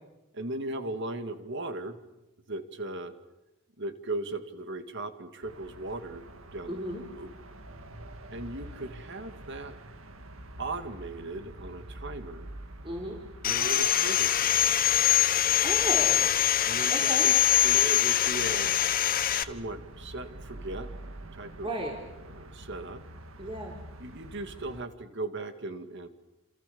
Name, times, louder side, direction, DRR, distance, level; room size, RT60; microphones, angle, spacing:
voice 1, 0.3-2.0 2.5-3.1 3.8-6.2 6.5-6.8 7.2-7.3 8.3-9.7 10.6-12.5 13.4-14.7 16.7-17.3 17.6-18.8 19.3-20.9 21.3-21.7 22.2-23.0 24.0-26.1, right 2 dB, 60° right, 8 dB, 2.3 m, -37 dB
sound 1, 5.4-24.8, right 1 dB, 90° right, 1.9 m, -46 dB
voice 2, 6.7-7.0 12.8-13.2 15.3-15.4 15.6-16.3 16.9-17.3 21.6-22.0 23.4-23.8, right 1 dB, 25° right, -1 dB, 4.2 m, -34 dB
Sawing, 13.4-19.4, left 10 dB, 45° left, 1.1 m, -24 dB
28.5 x 27.5 x 7.0 m, 0.99 s
head